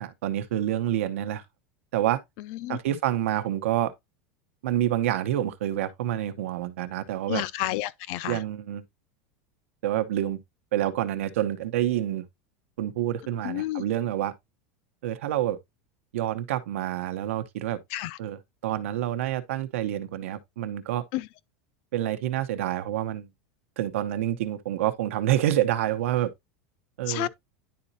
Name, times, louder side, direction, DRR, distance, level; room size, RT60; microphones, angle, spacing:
voice 1, 0.0-1.4 1.9-2.2 2.7-3.9 4.6-7.4 8.2-8.8 9.8-10.4 10.7-12.2 12.8-14.3 15.0-15.6 16.1-17.8 18.2-21.0 21.9-23.3 23.8-26.3 27.0-27.3, right 12 dB, 90° right, 0.9 m, -27 dB
voice 2, 7.3-8.4 13.4-13.8 17.9-18.2 21.1-21.2 27.1-27.3, left 15 dB, 40° left, 0.4 m, -30 dB
10.5 x 4.0 x 2.6 m
supercardioid pair, 180°, 7 cm